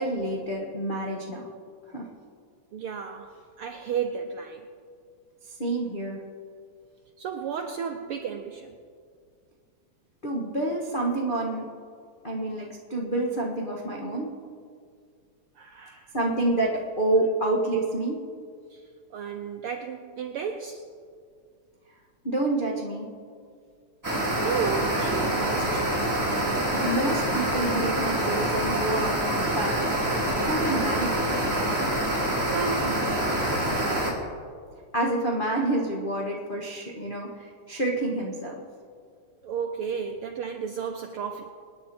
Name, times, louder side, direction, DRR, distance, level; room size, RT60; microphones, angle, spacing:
voice 1, 0.0-1.5 1.9-2.1 5.6-6.2 10.2-11.7 12.2-14.3 16.1-18.2 22.2-23.1 26.8-29.8 30.4-31.3 34.9-38.6, right 2 dB, 30° left, -3 dB, 0.9 m, -28 dB
voice 2, 2.7-4.7 7.2-8.8 15.5-16.1 18.7-20.8 24.4-25.9 32.5-33.1 39.4-41.5, right 7 dB, 85° right, 5 dB, 1.2 m, -33 dB
sound 1, 24.0-34.1, right 1 dB, 5° right, 2.7 m, -26 dB
26.5 x 9.9 x 4.4 m, 2.1 s
omnidirectional pair, 3.4 m